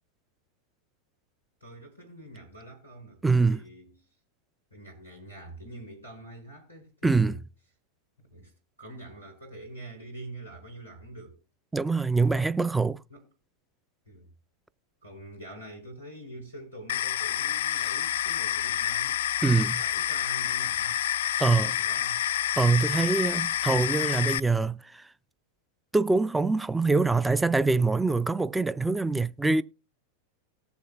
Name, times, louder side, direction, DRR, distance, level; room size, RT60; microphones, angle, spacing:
voice 1, 1.6-4.0 4.7-7.4 8.3-8.5 8.8-11.4 12.2-12.5 13.1-13.2 14.1-14.3 15.0-19.2 19.7-21.0 21.3-22.2, right 1 dB, 85° right, 4.3 m, -45 dB
voice 2, 3.2-3.6 7.0-7.4 11.7-13.0 19.4-19.8 21.4-21.7 22.6-25.0 25.9-29.6, right 3 dB, 5° right, 0.4 m, -24 dB
sound 1, 16.9-24.4, left 11 dB, 60° left, 0.3 m, -28 dB
18.5 x 7.1 x 2.2 m
figure-of-eight pair, 90°, 0 cm